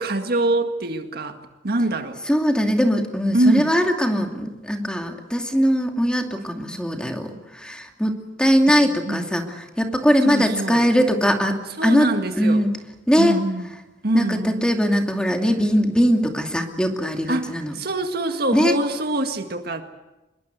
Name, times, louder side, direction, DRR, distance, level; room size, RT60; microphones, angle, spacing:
voice 1, 0.0-1.4 1.6-2.2 3.3-3.7 8.8-9.2 10.2-10.9 11.8-12.7 13.2-13.7 14.0-14.7 17.3-19.8, right 1 dB, 55° right, 6 dB, 1.9 m, -24 dB
voice 2, 2.3-8.1 8.4-11.6 11.8-12.0 12.4-12.7 13.1-13.3 14.1-17.7 18.5-18.7, equal, 5° left, 3 dB, 2.5 m, -20 dB
26.0 x 21.5 x 8.2 m, 1.0 s
head